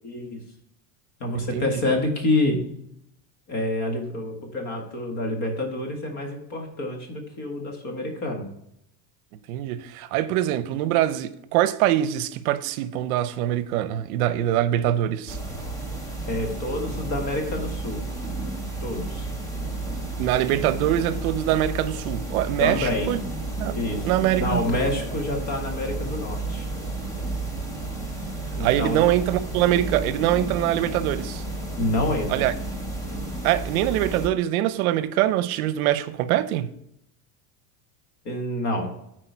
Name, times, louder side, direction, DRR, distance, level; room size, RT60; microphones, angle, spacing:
voice 1, 0.0-0.4 1.2-2.6 3.5-8.5 16.3-18.0 18.8-19.3 22.6-23.2 23.7-26.7 28.5-29.0 31.8-32.5 38.3-38.9, left 2 dB, 40° left, 1.7 m, -27 dB
voice 2, 1.3-1.7 9.5-15.4 20.2-23.2 23.6-23.8 24.0-24.6 28.6-31.4 32.3-32.5 33.4-36.7, right 13 dB, 75° right, 0.7 m, -23 dB
sound 1, 15.3-34.3, right 2 dB, 10° left, 0.4 m, -32 dB
8.6 x 4.5 x 4.5 m
cardioid pair, 165°, 44 cm